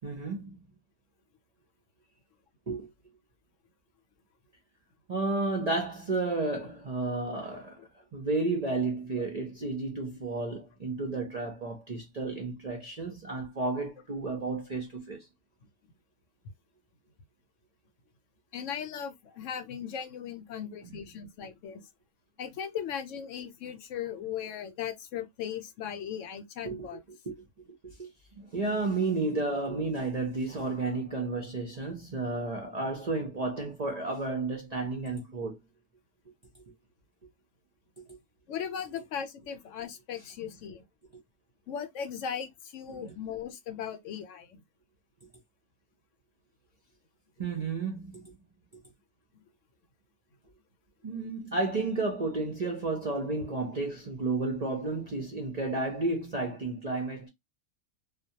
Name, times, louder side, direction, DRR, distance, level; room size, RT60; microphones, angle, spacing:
voice 1, 0.0-0.6 2.7-2.9 5.1-7.8 8.1-15.3 20.8-21.1 26.6-26.9 27.3-27.4 27.8-28.1 28.4-35.6 42.9-43.1 47.4-48.3 51.0-57.3, right 3 dB, 50° right, 0.5 m, -32 dB
voice 2, 18.5-21.8 22.4-27.0 38.5-40.8 41.7-44.6 49.3-49.4, left 8 dB, 70° left, 0.9 m, -38 dB
2.2 x 2.2 x 2.7 m
omnidirectional pair, 1.4 m